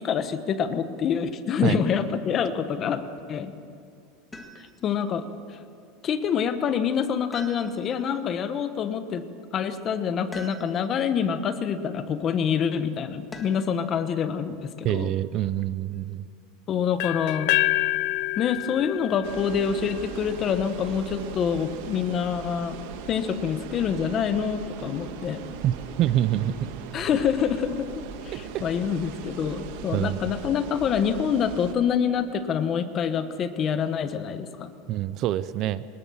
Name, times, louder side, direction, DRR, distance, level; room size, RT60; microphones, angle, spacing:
voice 1, 0.0-3.0 3.3-3.5 4.6-5.2 6.0-9.3 9.5-15.1 16.7-17.8 18.4-22.8 23.1-25.4 26.9-34.7, left 7 dB, 25° left, 10 dB, 1.1 m, -26 dB
sound 1, 4.3-5.0 7.3-8.1 10.3-11.0 13.3-13.8 15.5-16.2, left 1 dB, 10° left, 1.8 m, -44 dB
voice 2, 14.8-16.2 25.6-26.7 28.3-28.6 29.9-30.3 34.9-35.8, right 12 dB, 35° right, 16 dB, 0.5 m, -26 dB
sound 2, 17.0-20.9, left 20 dB, 55° left, 0.7 m, -28 dB
sound 3, 19.2-31.7, right 7 dB, 60° right, 1.7 m, -39 dB
22.5 x 20.0 x 7.2 m, 2.3 s
supercardioid pair, 165°, 0 cm